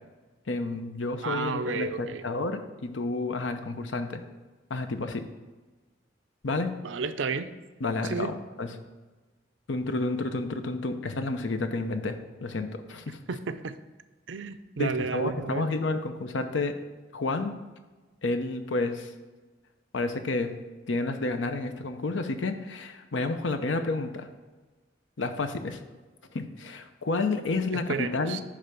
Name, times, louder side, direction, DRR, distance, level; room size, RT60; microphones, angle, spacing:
voice 1, 0.5-4.2 4.7-5.2 6.4-6.7 7.8-8.7 9.7-13.2 14.8-16.7 17.1-17.5 18.2-19.1 19.9-20.6 20.9-24.3 25.2-25.8 26.3-28.4, left 3 dB, 80° left, 8 dB, 0.8 m, -30 dB
voice 2, 1.2-2.2 6.8-7.5 8.0-8.3 13.3-13.8 14.3-15.7 27.7-28.4, right 4 dB, 75° right, 11 dB, 0.5 m, -32 dB
10.0 x 3.4 x 6.8 m, 1.2 s
head